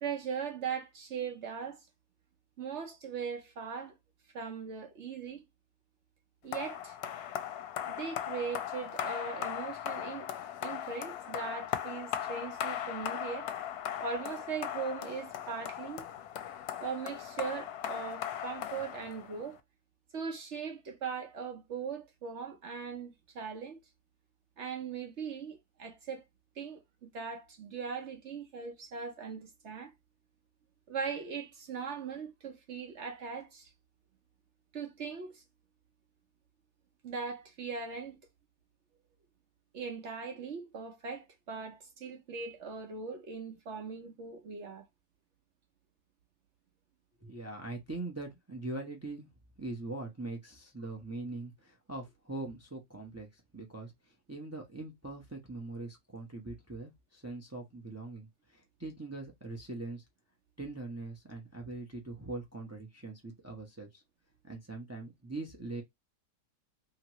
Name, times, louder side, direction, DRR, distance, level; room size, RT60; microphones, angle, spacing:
voice 1, 0.0-1.9 2.6-4.0 4.3-5.4 6.4-7.0 7.9-10.3 10.6-13.5 14.0-16.1 16.8-19.6 20.1-23.8 24.6-26.2 26.6-29.9 30.9-33.7 34.7-35.4 37.0-38.2 39.7-44.8, right 6 dB, 55° right, 0.8 m, -39 dB
sound 1, 6.5-19.5, left 10 dB, 75° left, 1.0 m, -38 dB
voice 2, 47.2-49.3 49.6-60.0 60.6-64.0 64.4-65.8, right 2 dB, 25° right, 0.3 m, -42 dB
2.9 x 2.8 x 2.9 m
omnidirectional pair, 1.8 m